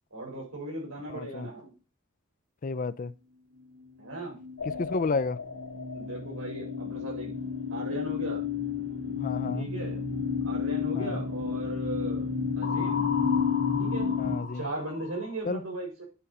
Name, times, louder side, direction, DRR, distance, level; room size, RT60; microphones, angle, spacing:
voice 1, 0.1-1.7 4.0-4.4 5.9-7.3 7.7-8.4 9.5-10.0 10.4-13.1 13.8-14.2 14.5-16.0, right 2 dB, 80° right, 4.6 m, -37 dB
voice 2, 1.1-1.5 2.6-3.1 4.8-5.4 9.2-9.7 10.9-11.2 14.2-14.7 15.4-15.6, left 4 dB, 40° left, 0.4 m, -31 dB
sound 1, 4.4-5.2 5.5-14.4, left 6 dB, 60° right, 0.9 m, -31 dB
sound 2, 4.6-7.8 12.6-15.4, left 5 dB, 70° left, 1.8 m, -38 dB
9.1 x 4.2 x 6.6 m
head